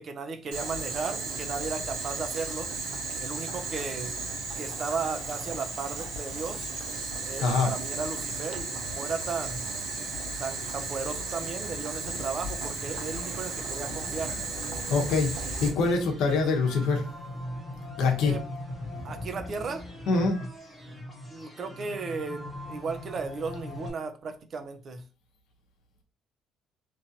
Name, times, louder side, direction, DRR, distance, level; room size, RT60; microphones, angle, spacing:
voice 1, 0.0-2.7 3.2-4.1 4.6-6.7 7.2-9.6 10.4-14.4 18.2-18.4 19.0-19.9 21.3-25.0, right 4 dB, 35° right, 0.4 m, -35 dB
Boiling, 0.5-15.7, right 3 dB, 85° right, 1.0 m, -35 dB
sound 1, 12.9-23.9, left 1 dB, ahead, 0.7 m, -40 dB
voice 2, 14.9-17.0 18.0-18.3 20.1-20.4, left 4 dB, 75° left, 0.8 m, -24 dB
3.0 x 2.5 x 2.7 m
cardioid pair, 155°, 0 cm